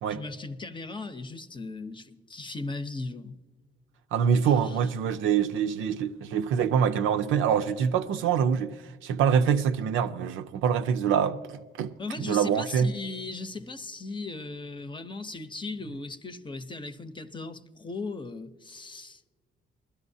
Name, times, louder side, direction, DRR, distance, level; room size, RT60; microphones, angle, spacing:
voice 1, 0.1-3.4 4.4-4.9 12.0-19.3, left 3 dB, 25° left, 0.7 m, -37 dB
voice 2, 4.1-8.8 9.0-12.9, right 7 dB, 90° right, 0.6 m, -25 dB
20.5 x 13.5 x 2.7 m
cardioid pair, 90°, 20 cm